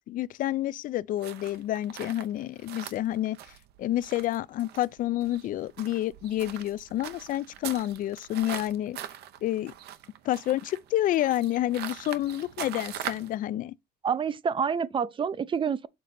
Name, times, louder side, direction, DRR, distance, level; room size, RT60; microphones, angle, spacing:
voice 1, 0.1-3.4 3.8-9.0 9.4-9.7 10.2-13.8, left 13 dB, 55° left, 0.4 m, -29 dB
sound 1, 1.2-13.4, right 11 dB, 75° right, 0.8 m, -42 dB
voice 2, 14.0-15.9, right 6 dB, 30° right, 0.4 m, -28 dB
6.8 x 3.7 x 4.2 m
cardioid pair, 110°, 17 cm